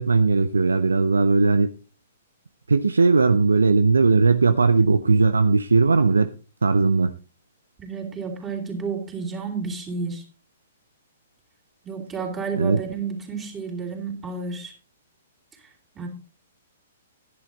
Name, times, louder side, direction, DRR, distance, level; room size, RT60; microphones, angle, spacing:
voice 1, 0.0-1.7 2.7-6.3 6.6-7.1 12.6-12.8, right 4 dB, 75° right, 0.6 m, -18 dB
voice 2, 7.8-10.2 11.8-14.7 16.0-16.1, right 5 dB, 15° right, 3.7 m, -31 dB
11.5 x 10.5 x 4.0 m
figure-of-eight pair, 115°, 0 cm